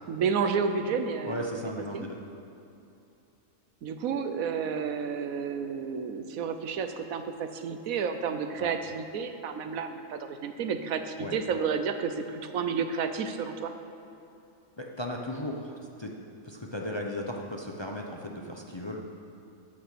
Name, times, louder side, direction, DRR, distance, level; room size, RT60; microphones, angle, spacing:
voice 1, 0.1-1.4 1.9-2.1 3.8-13.7, right 6 dB, 85° right, 8 dB, 1.2 m, -31 dB
voice 2, 1.2-2.2 8.6-8.7 11.2-11.4 14.8-16.1 16.4-19.1, left 1 dB, 25° left, 0 dB, 0.6 m, -36 dB
13.5 x 5.8 x 6.7 m, 2.7 s
omnidirectional pair, 1.4 m